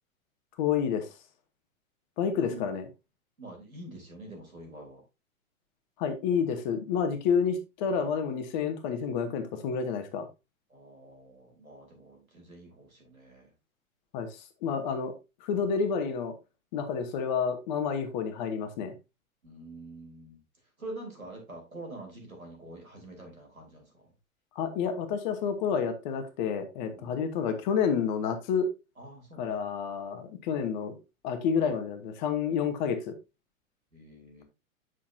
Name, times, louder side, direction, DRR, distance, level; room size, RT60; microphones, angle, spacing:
voice 1, 0.6-1.1 2.2-2.8 6.0-10.3 14.1-14.3 14.6-15.1 15.4-16.3 16.7-18.9 24.5-28.7 29.4-31.0 31.2-33.1, left 6 dB, 35° left, 7 dB, 1.1 m, -29 dB
voice 2, 3.4-5.0 10.7-13.5 19.4-20.4 20.8-24.1 26.9-27.2 29.0-29.7 33.9-34.4, right 1 dB, 80° right, 1 dB, 3.5 m, -46 dB
8.4 x 6.2 x 2.7 m, 0.26 s
figure-of-eight pair, 105°, 41 cm